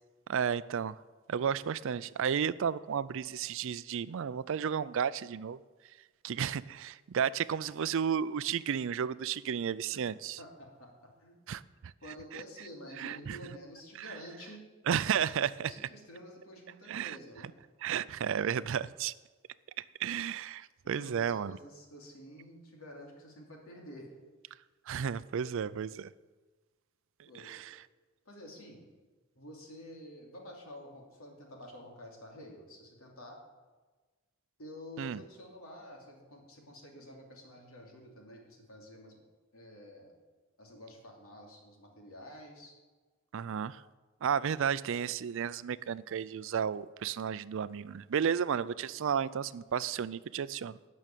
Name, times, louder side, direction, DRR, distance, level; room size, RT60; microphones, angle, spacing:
voice 1, 0.3-0.9 1.3-5.6 6.2-10.4 11.5-11.9 12.3-12.4 13.0-13.4 14.9-15.7 16.9-17.2 17.8-19.1 20.0-21.6 24.9-26.1 27.5-27.6 35.0-35.2 43.3-43.8 44.2-50.8, right 7 dB, 65° right, 0.4 m, -33 dB
voice 2, 10.4-10.9 11.2-11.4 12.0-14.6 15.6-17.5 20.8-24.1 27.3-27.5 28.2-28.8 29.3-33.4 34.6-39.2 39.5-40.1 40.6-42.7 44.4-44.6, equal, 80° left, 2.9 m, -49 dB
12.0 x 6.3 x 9.0 m
head